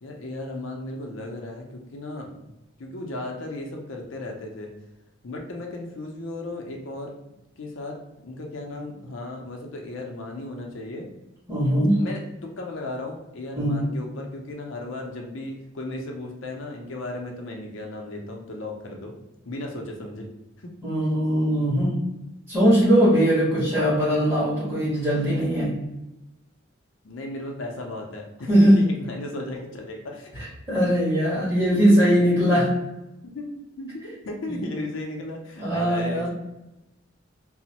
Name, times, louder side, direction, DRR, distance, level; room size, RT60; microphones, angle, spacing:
voice 1, 0.0-2.5 2.8-4.7 5.2-7.1 7.6-8.0 8.2-11.1 12.0-19.1 19.5-20.3 20.6-20.7 27.0-30.4 31.7-31.8 32.1-32.5 33.2-33.5 33.8-36.3, left 2 dB, 80° left, 1 dB, 0.5 m, -35 dB
voice 2, 11.5-12.0 13.6-13.8 20.8-22.0 22.5-25.7 28.5-28.8 30.7-32.6 34.5-34.6 35.6-36.3, equal, 15° right, -10 dB, 1.5 m, -20 dB
3.0 x 2.0 x 2.8 m, 0.94 s
head